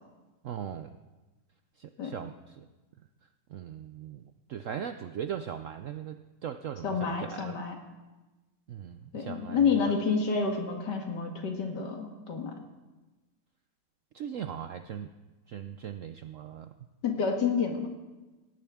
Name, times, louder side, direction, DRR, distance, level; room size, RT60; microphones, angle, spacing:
voice 1, 0.4-0.9 1.8-2.6 3.5-4.2 4.5-7.6 8.7-9.9 14.1-15.1 15.5-16.7, right 9 dB, 70° right, 9 dB, 0.7 m, -39 dB
voice 2, 6.8-7.8 9.1-12.5 17.0-17.8, left 5 dB, 70° left, 3 dB, 2.3 m, -29 dB
19.0 x 16.0 x 3.6 m, 1.2 s
omnidirectional pair, 1.9 m